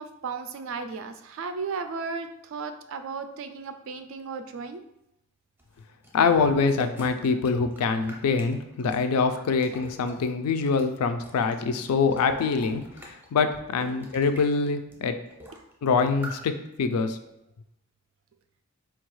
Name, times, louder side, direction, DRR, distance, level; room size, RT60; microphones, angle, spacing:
voice 1, 0.0-4.8 6.3-6.5 13.8-14.0, right 4 dB, 60° right, 8 dB, 0.3 m, -35 dB
sound 1, 5.6-10.3 10.7-13.3 13.7-14.4 14.9-15.0 15.3-15.7 16.0-16.4, equal, 10° right, 0.5 m, -46 dB
voice 2, 6.1-12.8 13.3-15.2 15.8-17.2, left 5 dB, 85° left, 9 dB, 0.4 m, -24 dB
4.4 x 2.3 x 3.1 m, 0.84 s
head